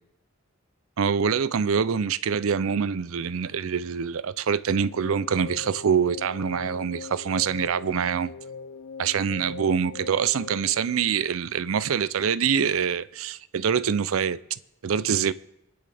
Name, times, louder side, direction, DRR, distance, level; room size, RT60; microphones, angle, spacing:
voice 1, 1.0-8.3 9.0-15.3, right 7 dB, 85° right, 0.5 m, -25 dB
sound 1, 4.6-11.8, left 5 dB, 75° left, 0.5 m, -42 dB
26.5 x 9.8 x 3.5 m
head